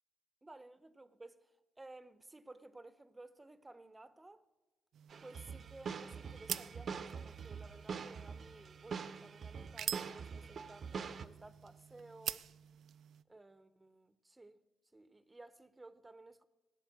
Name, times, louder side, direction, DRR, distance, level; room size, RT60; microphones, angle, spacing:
voice 1, 0.4-4.4 5.2-12.5 13.3-14.6 14.9-16.5, right 2 dB, 15° right, 0.8 m, -56 dB
sound 1, 4.9-13.2, right 9 dB, 70° right, 0.4 m, -47 dB
sound 2, 5.1-11.3, right 6 dB, 50° right, 0.8 m, -44 dB
16.5 x 7.0 x 9.0 m
cardioid pair, 90°, 0 cm